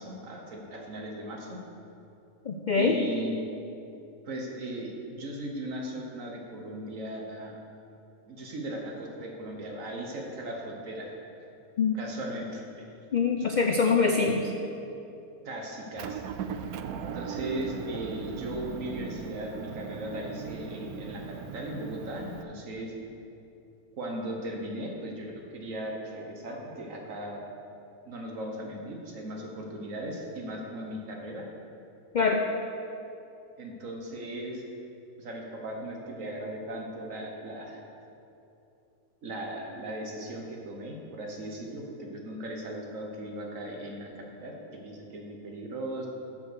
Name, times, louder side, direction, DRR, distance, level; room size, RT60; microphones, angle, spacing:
voice 1, 0.0-1.6 2.8-3.4 4.2-7.5 8.3-11.4 11.9-12.6 14.2-14.3 15.4-16.2 17.1-22.9 24.0-27.4 28.1-31.5 33.6-34.6 35.2-37.8 39.2-44.5 44.8-46.1, right 1 dB, 65° right, 0 dB, 1.6 m, -37 dB
voice 2, 2.5-3.0 11.8-11.9 13.1-14.5 32.1-32.4, left 5 dB, 75° left, 3 dB, 0.4 m, -24 dB
Motor vehicle (road) / Engine, 16.0-22.4, right 7 dB, 85° right, 1.1 m, -38 dB
7.6 x 7.2 x 6.4 m, 2.8 s
omnidirectional pair, 1.5 m